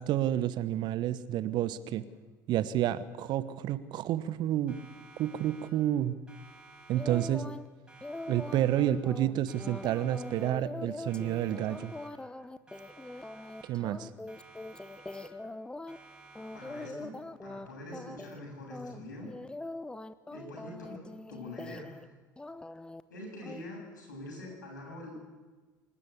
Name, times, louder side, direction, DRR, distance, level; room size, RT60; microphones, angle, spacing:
voice 1, 0.0-2.0 2.5-4.8 5.2-6.2 6.9-7.4 8.3-11.9 13.6-14.1, right 12 dB, 50° right, 15 dB, 1.1 m, -30 dB
Siren, 4.7-6.0 6.3-7.6 7.9-9.2 9.5-10.8 11.1-12.4 12.7-14.0 14.3-15.6 15.9-17.2, right 3 dB, 10° right, 7.8 m, -55 dB
sound 1, 7.0-7.7 8.0-16.0 16.4-17.7 17.9-18.4 18.7-22.1 22.4-23.0 23.4-23.6, left 2 dB, 10° left, 0.9 m, -43 dB
voice 2, 16.5-19.3 20.3-21.0 21.3-22.0 23.1-25.2, left 1 dB, 75° left, 0 dB, 7.9 m, -44 dB
26.5 x 12.5 x 8.4 m, 1.3 s
figure-of-eight pair, 65°, 10 cm